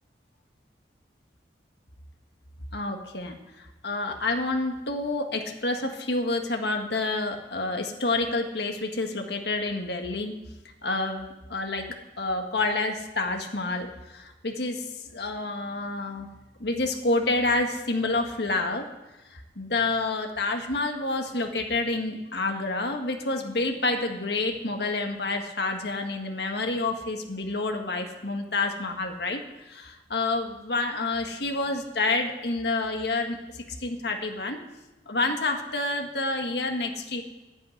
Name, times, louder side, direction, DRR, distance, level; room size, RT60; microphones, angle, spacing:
voice 1, 2.7-10.3 10.8-11.9 12.2-13.9 14.1-14.8 15.1-16.3 16.6-18.9 19.3-29.4 29.7-34.6 35.0-37.2, left 2 dB, 65° left, 3 dB, 1.8 m, -28 dB
11.0 x 9.4 x 9.5 m, 1.1 s
head